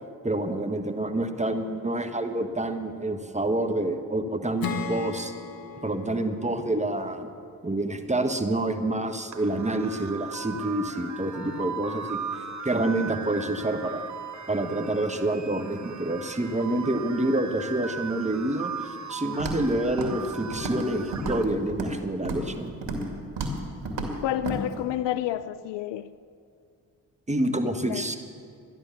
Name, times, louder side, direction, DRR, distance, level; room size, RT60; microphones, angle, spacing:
voice 1, 0.2-5.3 5.8-7.3 7.6-12.2 12.6-14.1 14.5-22.7 27.3-28.2, right 1 dB, 15° right, 7 dB, 1.4 m, -28 dB
Acoustic guitar / Strum, 4.6-8.1, left 5 dB, 50° left, 1.6 m, -37 dB
sound 1, 9.3-21.4, right 6 dB, 40° right, 1.1 m, -38 dB
Walk footsteps, 19.4-19.7 20.0-20.3 20.5-20.9 21.1-22.0 22.2-22.5 22.8-23.1 23.4-23.6 23.8-24.1 24.4-24.6, right 2 dB, 65° right, 2.4 m, -31 dB
voice 2, 24.2-26.1 27.8-28.0, left 12 dB, 65° left, 15 dB, 0.6 m, -29 dB
13.0 x 11.0 x 7.1 m, 2.4 s
hypercardioid pair, 40°, 46 cm